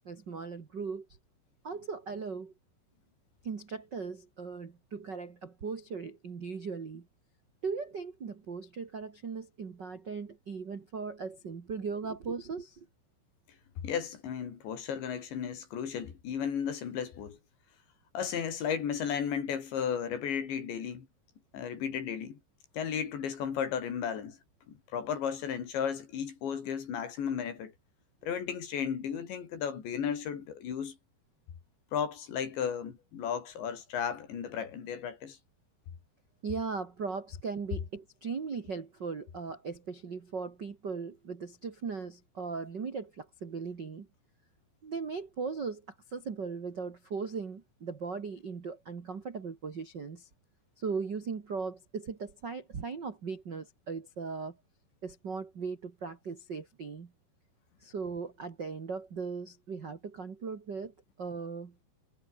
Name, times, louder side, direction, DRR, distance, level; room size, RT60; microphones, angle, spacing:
voice 1, 0.0-1.1 1.6-2.5 3.4-7.1 7.6-12.9 36.4-44.1 44.8-45.8 46.1-50.3 50.8-54.6 55.0-57.1 57.8-61.7, right 5 dB, 70° right, 1.0 m, -38 dB
voice 2, 13.8-17.4 18.1-21.1 21.5-22.4 22.7-24.4 24.7-27.7 28.2-31.0 31.9-35.4, left 8 dB, 70° left, 6.0 m, -34 dB
omnidirectional pair, 5.3 m